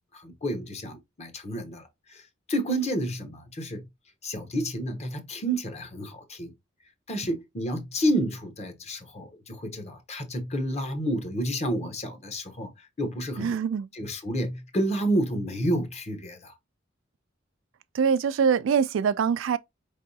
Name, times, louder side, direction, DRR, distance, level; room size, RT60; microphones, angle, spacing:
voice 1, 0.1-2.2 2.5-3.8 4.2-6.5 7.1-13.6 13.9-16.5, right 1 dB, 35° left, 0.9 m, -30 dB
voice 2, 13.4-13.9 17.9-19.6, right 6 dB, 85° right, 0.3 m, -24 dB
4.6 x 3.4 x 2.7 m
head